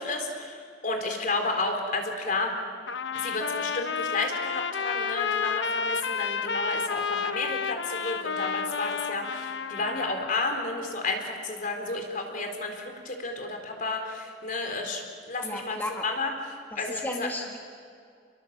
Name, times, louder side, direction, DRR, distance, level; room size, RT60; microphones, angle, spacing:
voice 1, 0.0-2.5 3.1-15.0 15.3-15.8 16.0-16.3 16.8-17.3, left 3 dB, 50° left, 3 dB, 4.1 m, -31 dB
Trumpet, 2.9-10.3, left 5 dB, 85° left, 0.9 m, -31 dB
voice 2, 15.4-16.0 16.7-17.6, left 1 dB, 10° left, 0 dB, 1.8 m, -34 dB
30.0 x 22.5 x 7.7 m, 2.3 s
head